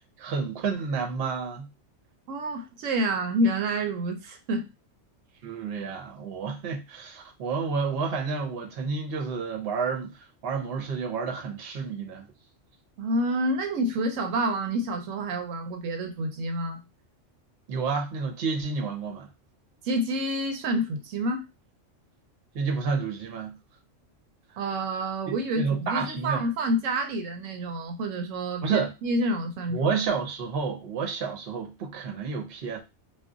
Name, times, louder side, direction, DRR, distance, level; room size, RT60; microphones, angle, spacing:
voice 1, 0.2-1.7 5.4-12.3 17.7-19.3 22.5-23.6 25.3-26.4 28.6-28.9 29.7-32.8, right 5 dB, 55° right, 0.9 m, -30 dB
voice 2, 2.3-4.7 13.0-16.8 19.8-21.4 24.6-29.9, right 1 dB, 80° right, 1.0 m, -28 dB
2.4 x 2.3 x 3.7 m
omnidirectional pair, 1.3 m